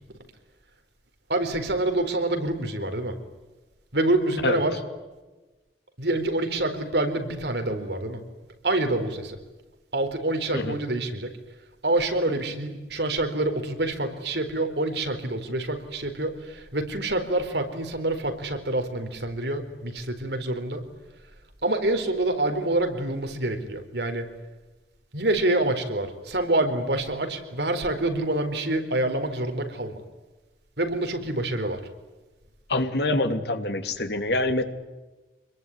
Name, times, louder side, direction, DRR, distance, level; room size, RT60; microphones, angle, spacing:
voice 1, 1.3-3.2 3.9-4.8 6.0-8.2 8.6-9.4 9.9-11.3 11.8-20.8 21.6-24.3 25.1-30.0 30.8-31.8, right 2 dB, 70° right, 7 dB, 4.3 m, -26 dB
voice 2, 32.7-34.6, left 2 dB, 70° left, 7 dB, 2.9 m, -25 dB
26.5 x 22.0 x 9.8 m, 1.2 s
head